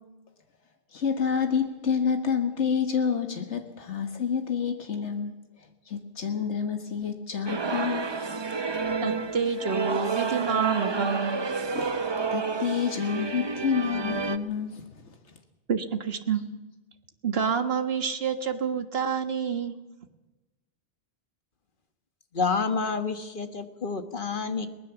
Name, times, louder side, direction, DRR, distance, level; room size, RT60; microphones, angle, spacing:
voice 1, 0.9-5.3 5.9-8.1 11.7-14.8, left 6 dB, 85° left, 5 dB, 1.9 m, -28 dB
sound 1, 7.5-14.4, right 4 dB, 25° right, 0.8 m, -30 dB
voice 2, 9.0-11.4 15.7-16.4 17.2-19.7, right 6 dB, 60° right, 8 dB, 1.7 m, -28 dB
voice 3, 22.3-24.7, left 4 dB, 50° left, 8 dB, 1.6 m, -28 dB
22.0 x 19.5 x 7.1 m, 1.1 s
omnidirectional pair, 1.1 m